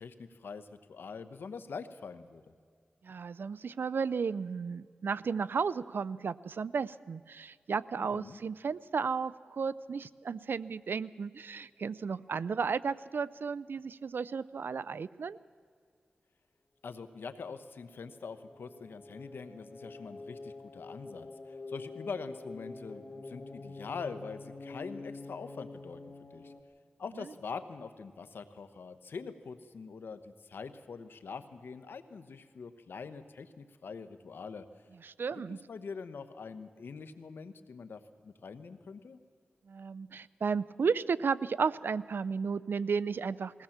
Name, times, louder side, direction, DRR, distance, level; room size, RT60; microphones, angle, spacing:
voice 1, 0.0-2.5 8.0-8.4 16.8-26.5 27.0-34.7 35.3-39.2, left 5 dB, 85° left, 11 dB, 1.1 m, -44 dB
voice 2, 3.0-15.4 35.0-35.6 39.7-43.6, right 5 dB, 75° right, 18 dB, 0.5 m, -33 dB
sound 1, 17.2-26.6, left 3 dB, 40° left, 1.4 m, -47 dB
21.0 x 17.5 x 7.3 m, 2.1 s
cardioid pair, 60°, 4 cm